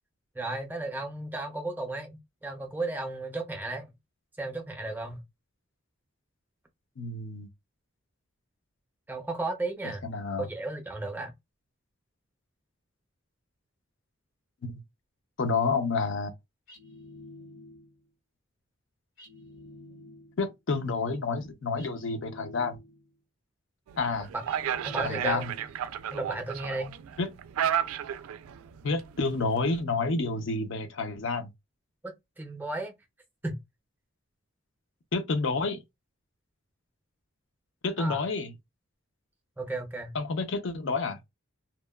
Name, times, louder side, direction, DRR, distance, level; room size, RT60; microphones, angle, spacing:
voice 1, 0.4-3.9 4.4-5.2 9.1-10.0 10.4-11.3 24.8-25.5 26.1-26.9 32.0-32.9 33.4-33.6 38.0-38.2 39.6-40.2, right 2 dB, 10° right, 0.5 m, -34 dB
voice 2, 7.0-7.5 10.0-10.5 14.6-14.8 15.4-16.3 20.4-22.8 24.0-24.3 25.0-25.5 27.2-27.3 28.8-31.5 35.1-35.8 37.8-38.5 40.1-41.2, left 3 dB, 60° left, 0.5 m, -29 dB
sound 1, 16.7-18.0 19.2-20.5 21.8-23.1 24.5-25.8, left 2 dB, 80° left, 1.8 m, -49 dB
sound 2, 23.9-29.8, right 9 dB, 90° right, 0.3 m, -33 dB
2.9 x 2.1 x 2.2 m
head